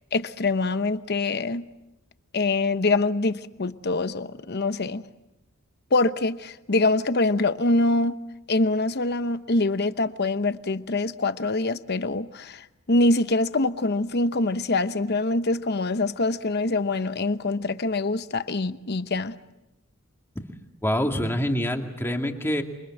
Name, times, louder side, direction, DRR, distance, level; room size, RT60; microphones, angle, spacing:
voice 1, 0.1-1.6 2.3-5.0 5.9-8.2 8.5-19.4, left 2 dB, 50° left, 0.9 m, -24 dB
voice 2, 20.8-22.6, equal, 10° left, 2.3 m, -26 dB
28.5 x 24.5 x 7.8 m
head